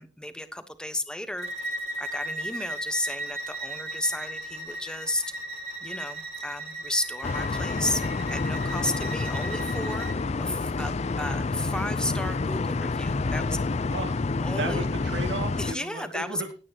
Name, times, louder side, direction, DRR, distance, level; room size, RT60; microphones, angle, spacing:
voice 1, 0.0-1.7 2.0-5.2 5.8-8.0 8.3-10.1 10.4-13.6 14.4-14.9 15.6-16.5, left 1 dB, 5° left, 10 dB, 1.1 m, -33 dB
Bowed string instrument, 1.4-10.2, right 1 dB, 35° right, 2.3 m, -36 dB
sound 1, 7.2-15.7, left 3 dB, 35° left, 0.4 m, -28 dB
voice 2, 13.9-14.2 14.6-16.5, right 2 dB, 70° right, 4 dB, 2.3 m, -34 dB
19.0 x 8.7 x 2.9 m, 0.34 s
head